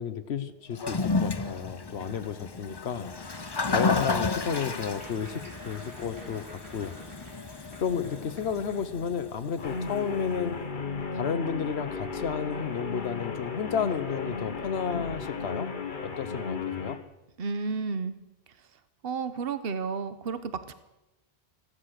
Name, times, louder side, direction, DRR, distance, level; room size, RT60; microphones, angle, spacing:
voice 1, 0.0-3.1 3.7-7.0 7.7-10.6 11.1-15.7 16.0-17.0, left 7 dB, 80° left, 12 dB, 1.2 m, -32 dB
Toilet flush, 0.7-10.0, left 4 dB, 25° left, 0.6 m, -32 dB
Applause / Crowd, 3.1-8.8 9.4-9.5, right 1 dB, 85° right, 5.9 m, -49 dB
Guitar, 9.6-17.0, left 4 dB, 50° left, 1.4 m, -35 dB
voice 2, 17.4-18.1 19.0-20.7, right 5 dB, 65° right, 12 dB, 1.2 m, -32 dB
15.5 x 13.5 x 6.5 m, 0.97 s
omnidirectional pair, 1.1 m